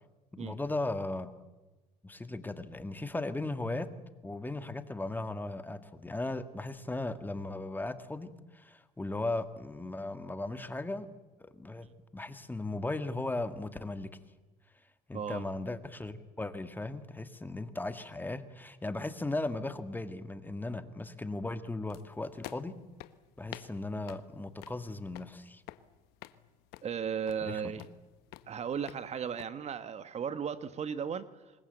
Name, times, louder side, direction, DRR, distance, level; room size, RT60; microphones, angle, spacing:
voice 1, 0.3-1.3 2.0-3.9 4.2-11.1 11.4-11.9 12.1-14.1 15.1-22.7 23.4-25.6 27.4-27.7, left 2 dB, 10° left, 10 dB, 1.8 m, -37 dB
voice 2, 15.1-15.4 26.8-27.9 28.5-31.3, right 7 dB, 40° right, 12 dB, 1.4 m, -35 dB
sound 1, 21.9-29.5, left 16 dB, 80° left, 1.2 m, -51 dB
26.5 x 21.5 x 8.1 m, 1.1 s
supercardioid pair, 95°, 16 cm